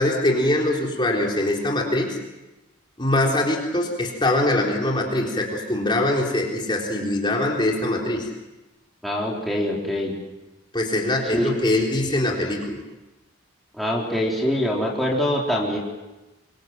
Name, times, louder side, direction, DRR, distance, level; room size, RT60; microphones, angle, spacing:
voice 1, 0.0-2.2 3.0-8.3 10.7-12.8, left 1 dB, 25° left, -1 dB, 4.0 m, -23 dB
voice 2, 9.0-10.2 11.3-11.5 13.8-15.8, equal, ahead, -4 dB, 4.1 m, -24 dB
25.5 x 24.0 x 7.7 m, 1.1 s
head